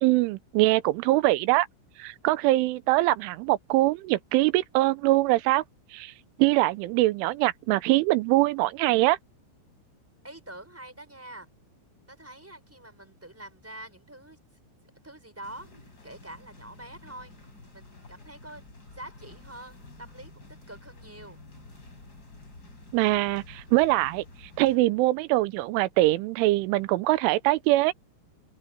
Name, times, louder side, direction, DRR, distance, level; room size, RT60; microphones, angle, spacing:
voice 1, 0.0-1.7 2.0-5.6 5.9-6.1 6.4-9.2 22.9-24.2 24.6-27.9, right 18 dB, 90° right, 3.3 m, -23 dB
voice 2, 10.2-11.5 12.1-14.4 15.0-17.3 17.7-18.6 18.9-21.4, right 1 dB, 5° right, 5.9 m, -45 dB
sound 1, 15.4-24.8, left 2 dB, 20° left, 4.4 m, -50 dB
open air
omnidirectional pair, 5.5 m